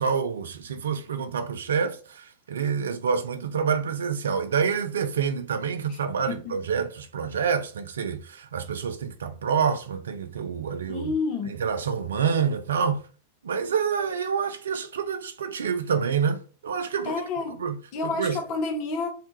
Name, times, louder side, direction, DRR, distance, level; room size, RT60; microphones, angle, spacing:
voice 1, 0.0-11.1 11.5-13.1 13.4-17.2 17.6-17.8 18.0-18.4, right 6 dB, 65° right, 0.3 m, -27 dB
voice 2, 10.9-11.6 17.0-17.6 17.9-19.1, left 4 dB, 45° left, 0.5 m, -29 dB
2.4 x 2.1 x 3.0 m
figure-of-eight pair, 90°, 0 cm